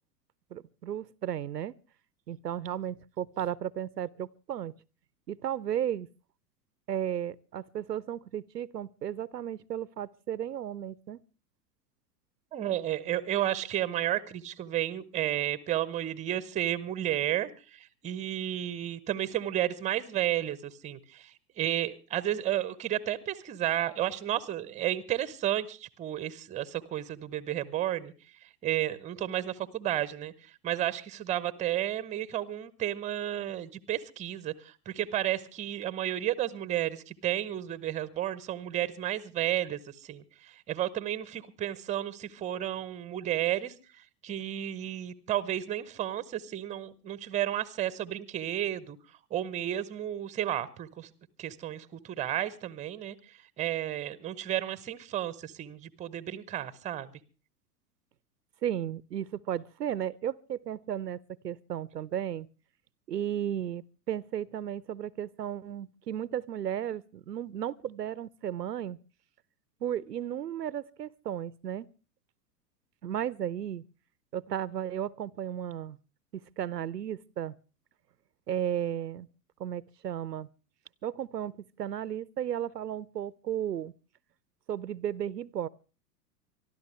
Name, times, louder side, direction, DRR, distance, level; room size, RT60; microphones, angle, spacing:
voice 1, 0.5-1.7 2.3-4.7 5.3-6.1 6.9-11.2 58.6-61.2 61.4-62.5 63.1-69.0 69.8-71.9 73.0-73.8 74.3-76.0 76.6-77.5 78.5-79.3 79.6-80.5 81.0-81.5 81.8-83.9 84.7-85.7, right 10 dB, 80° right, 0.6 m, -34 dB
voice 2, 12.5-28.1 28.6-30.3 30.6-49.0 49.3-51.1 51.4-53.1 53.6-57.1, right 12 dB, 15° right, 0.8 m, -32 dB
25.0 x 12.5 x 3.2 m
figure-of-eight pair, 95°, 48 cm